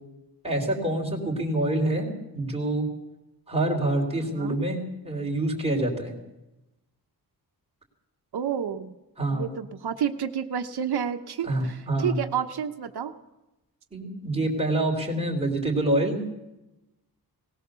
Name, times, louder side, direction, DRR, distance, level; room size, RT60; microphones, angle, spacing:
voice 1, 0.4-2.9 3.5-6.1 9.2-9.5 11.4-12.2 13.9-16.2, right 1 dB, 15° right, -1 dB, 3.8 m, -26 dB
voice 2, 8.3-9.0 9.3-13.1, right 8 dB, 85° right, 6 dB, 1.1 m, -30 dB
20.0 x 18.5 x 6.9 m, 0.97 s
wide cardioid pair, 170°, 38 cm